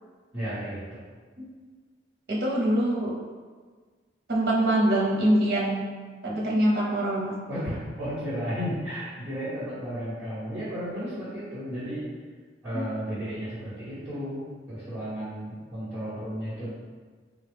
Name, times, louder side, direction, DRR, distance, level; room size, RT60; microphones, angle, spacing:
voice 1, 0.3-1.0 7.5-12.1 12.6-16.7, equal, 5° right, -16 dB, 1.2 m, -33 dB
voice 2, 2.3-3.1 4.3-5.9 6.2-7.4 12.7-12.8, right 1 dB, 55° right, -4 dB, 0.8 m, -24 dB
4.2 x 2.3 x 3.4 m, 1.5 s
head